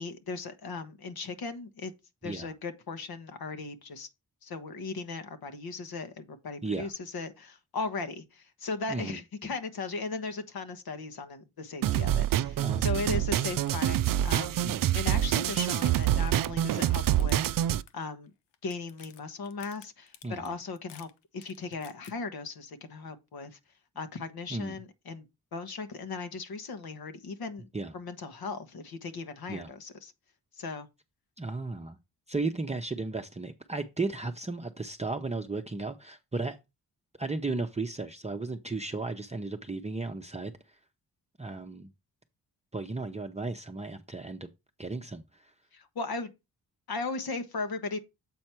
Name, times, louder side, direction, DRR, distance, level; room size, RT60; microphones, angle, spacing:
voice 1, 0.0-1.9 2.2-4.1 4.4-14.6 14.9-17.5 17.9-18.3 18.6-21.1 21.3-23.6 23.9-25.2 25.5-27.7 27.9-30.1 30.6-30.9 45.7-46.3 46.9-48.0, left 4 dB, 65° left, 1.2 m, -37 dB
sound 1, 11.8-17.8, right 12 dB, 55° right, 0.5 m, -26 dB
voice 2, 12.5-13.1 14.6-14.9 20.2-20.5 24.5-24.8 27.7-27.9 29.5-29.7 31.4-32.0 32.3-36.6 37.2-40.5 41.4-41.9 42.7-44.5 44.8-45.4, right 3 dB, 15° right, 0.8 m, -35 dB
sound 2, 12.8-12.9 13.2-13.7 14.0-14.5 15.1-17.6 17.9-18.3 18.5-22.1, left 10 dB, 90° left, 0.8 m, -53 dB
7.7 x 4.3 x 4.4 m
supercardioid pair, 50°, 40 cm